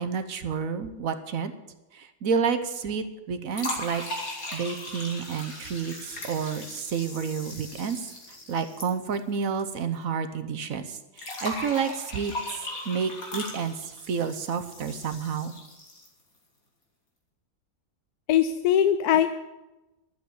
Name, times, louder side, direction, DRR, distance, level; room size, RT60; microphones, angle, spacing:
voice 1, 0.0-1.5 1.9-4.0 4.5-8.0 8.5-12.3 12.8-15.5, right 6 dB, 65° right, 9 dB, 1.2 m, -30 dB
sound 1, 3.5-9.7 10.0-10.1 11.2-16.2, left 1 dB, 60° left, 2.8 m, -38 dB
voice 2, 18.3-19.3, left 10 dB, 80° left, 10 dB, 1.1 m, -21 dB
12.0 x 8.0 x 8.3 m, 1.0 s
omnidirectional pair, 1.7 m